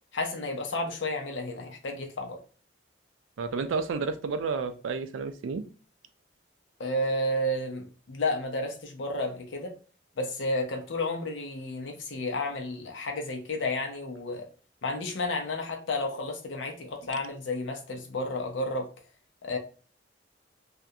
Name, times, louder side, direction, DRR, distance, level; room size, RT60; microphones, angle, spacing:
voice 1, 0.1-2.4 6.8-9.7 10.2-14.5 14.8-18.9 19.4-19.6, left 2 dB, 75° left, 0.6 m, -31 dB
voice 2, 3.4-5.6, right 4 dB, 85° right, 0.4 m, -31 dB
2.4 x 2.1 x 2.6 m
head